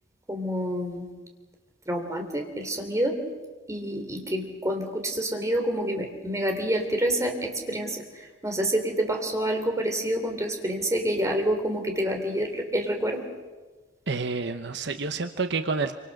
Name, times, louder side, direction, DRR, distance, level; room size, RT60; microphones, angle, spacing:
voice 1, 0.3-1.1 1.9-3.2 3.7-13.2, right 1 dB, 15° right, 3 dB, 3.5 m, -28 dB
voice 2, 14.1-15.9, right 4 dB, 65° right, 8 dB, 1.0 m, -29 dB
27.0 x 25.0 x 6.6 m, 1.3 s
head